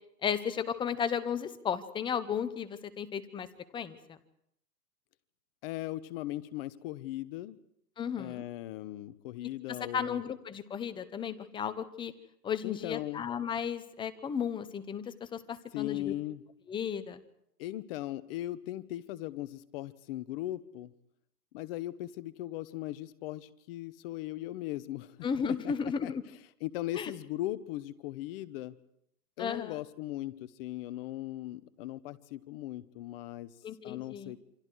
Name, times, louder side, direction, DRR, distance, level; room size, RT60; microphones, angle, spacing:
voice 1, 0.2-3.5 3.7-4.2 8.0-8.4 9.7-12.1 12.4-16.1 16.7-17.2 25.2-26.2 27.0-27.1 29.4-29.8 33.6-34.3, left 7 dB, 10° left, 12 dB, 0.8 m, -34 dB
voice 2, 5.6-7.6 8.2-10.2 12.6-13.3 15.7-16.4 17.6-20.9 21.5-25.2 25.6-25.7 26.0-26.1 26.6-28.7 29.4-33.5 33.8-34.4, left 15 dB, 35° left, 15 dB, 1.0 m, -38 dB
28.0 x 25.0 x 4.7 m, 0.73 s
hypercardioid pair, 140°, 49 cm